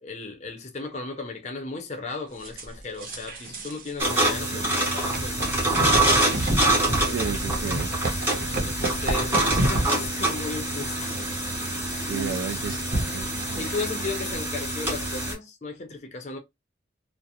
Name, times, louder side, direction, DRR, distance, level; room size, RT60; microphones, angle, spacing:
voice 1, 0.0-6.3 6.6-7.1 8.6-12.9 13.6-16.4, left 3 dB, 35° left, 0.5 m, -36 dB
sound 1, 2.4-3.9 4.2-4.4 5.1-14.4, right 1 dB, 50° right, 0.7 m, -31 dB
sound 2, 4.0-15.3, right 1 dB, 10° right, 0.7 m, -26 dB
voice 2, 4.4-4.8 7.0-8.0 12.1-13.7, right 6 dB, 90° right, 0.3 m, -34 dB
2.4 x 2.0 x 2.7 m
head